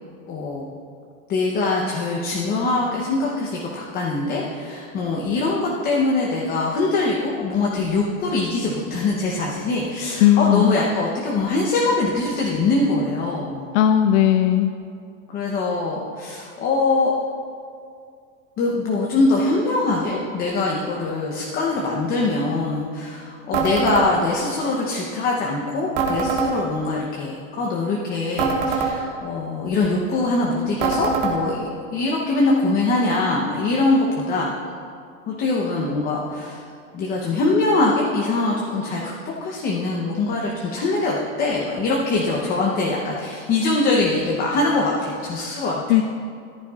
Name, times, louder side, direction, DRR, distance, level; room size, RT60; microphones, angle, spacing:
voice 1, 0.3-0.6 1.3-13.7 15.3-17.1 18.6-34.5 35.3-36.6 36.9-46.0, left 3 dB, 20° left, -3 dB, 0.8 m, -23 dB
voice 2, 10.2-10.8 13.7-14.7 45.9-46.0, left 11 dB, 65° left, 7 dB, 0.5 m, -16 dB
sound 1, 23.5-24.1 26.0-26.5 28.4-28.9 30.8-31.3, right 5 dB, 55° right, 1.6 m, -22 dB
13.5 x 11.5 x 2.4 m, 2.3 s
supercardioid pair, 155°, 40 cm